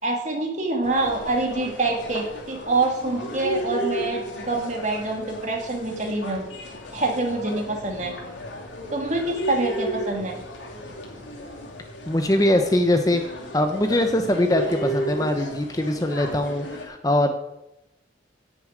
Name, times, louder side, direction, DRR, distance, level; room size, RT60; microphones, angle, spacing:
voice 1, 0.0-6.5 6.9-8.1 8.9-10.4, right 2 dB, 40° right, 1 dB, 2.5 m, -26 dB
sound 1, 0.8-16.8, equal, 80° left, 2.6 m, -34 dB
voice 2, 12.1-13.2 13.5-17.4, left 1 dB, 20° left, 6 dB, 0.7 m, -22 dB
9.9 x 6.9 x 8.9 m, 0.89 s
head